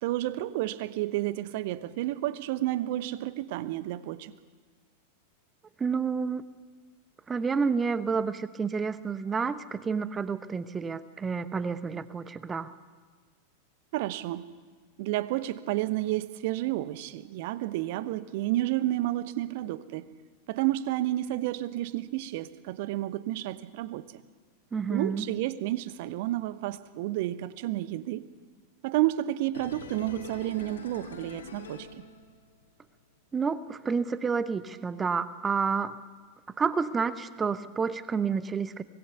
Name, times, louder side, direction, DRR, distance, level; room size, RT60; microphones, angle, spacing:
voice 1, 0.0-4.3 13.9-14.4 15.0-20.1 20.5-24.2 24.9-28.2 28.8-32.0, right 15 dB, 50° right, 15 dB, 0.9 m, -31 dB
voice 2, 5.8-6.4 7.3-12.7 24.7-25.2 33.3-36.0 36.6-38.8, right 5 dB, 15° right, 15 dB, 0.9 m, -29 dB
sound 1, 29.5-32.7 33.0-33.1, left 4 dB, 70° left, 2.6 m, -44 dB
24.5 x 19.5 x 6.8 m, 1.5 s
figure-of-eight pair, 90°, 0 cm